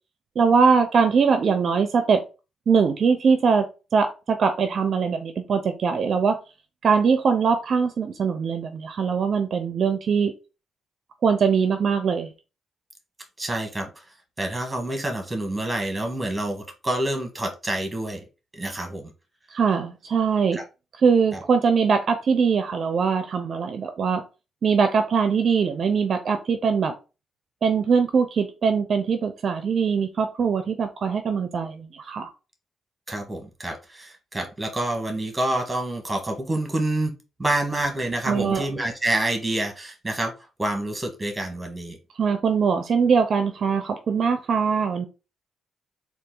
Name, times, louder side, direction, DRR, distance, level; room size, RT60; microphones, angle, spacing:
voice 1, 0.4-2.2 2.7-3.7 3.9-6.4 6.8-10.3 11.2-12.3 19.5-20.6 21.0-24.2 24.6-26.9 27.6-32.3 38.3-38.6 42.2-45.1, right 5 dB, 55° right, 8 dB, 0.5 m, -22 dB
voice 2, 13.4-13.9 14.4-18.2 18.5-19.1 20.5-20.6 21.3-21.4 33.1-37.1 37.4-42.0, right 1 dB, 15° right, 3 dB, 1.3 m, -27 dB
4.0 x 2.4 x 3.7 m, 0.30 s
cardioid pair, 90°, 0 cm